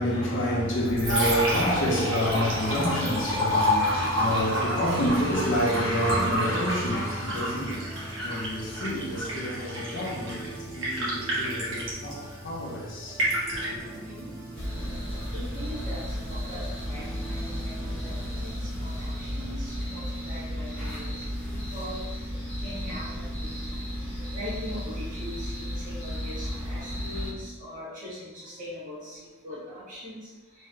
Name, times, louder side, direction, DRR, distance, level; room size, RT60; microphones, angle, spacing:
voice 1, 0.0-13.2 13.5-13.8, equal, 55° left, 0.5 m, -28 dB
Liquid, 0.6-19.6, equal, 65° right, 0.9 m, -31 dB
sound 1, 3.0-18.4, right 2 dB, 20° right, 0.4 m, -45 dB
voice 2, 5.0-6.4 13.8-14.3 15.3-18.1 18.4-21.2 21.5-22.0 22.6-23.8 24.3-30.7, equal, 40° right, 1.2 m, -41 dB
sound 2, 14.6-27.3, equal, 5° left, 1.2 m, -34 dB
3.1 x 2.6 x 2.3 m
head